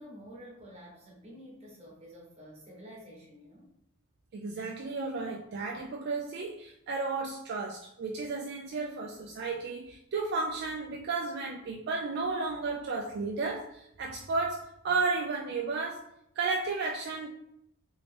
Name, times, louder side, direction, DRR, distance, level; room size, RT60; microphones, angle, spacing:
voice 1, 0.0-3.7, equal, 30° right, -3 dB, 1.0 m, -49 dB
voice 2, 4.3-16.1 16.4-17.3, right 4 dB, 50° right, 0 dB, 0.3 m, -33 dB
3.0 x 2.8 x 3.3 m, 0.79 s
head